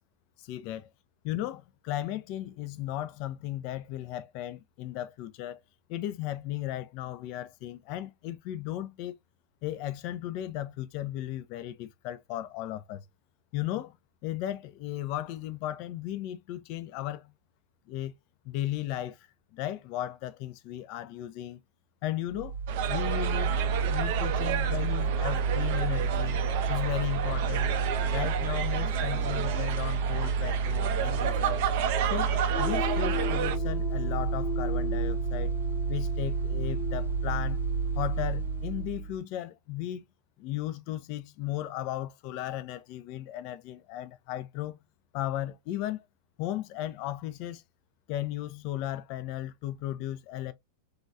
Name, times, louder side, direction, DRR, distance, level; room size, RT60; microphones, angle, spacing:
voice 1, 0.4-0.9 1.2-5.6 5.9-9.2 9.6-13.0 13.5-14.0 14.2-17.3 17.9-18.2 18.4-19.2 19.5-21.6 22.0-22.6 22.9-23.5 23.9-26.4 26.7-27.7 28.1-31.6 32.1-35.5 35.9-37.6 38.0-40.0 40.4-44.8 45.1-46.0 46.4-47.6 48.1-50.5, left 13 dB, 45° left, 0.3 m, -35 dB
Mechanical fan, 22.3-39.2, right 5 dB, 80° right, 0.7 m, -30 dB
sound 1, 22.7-33.6, right 9 dB, 50° right, 0.4 m, -32 dB
sound 2, 32.5-39.0, left 5 dB, ahead, 0.7 m, -38 dB
2.9 x 2.4 x 2.5 m
figure-of-eight pair, 90°, 0 cm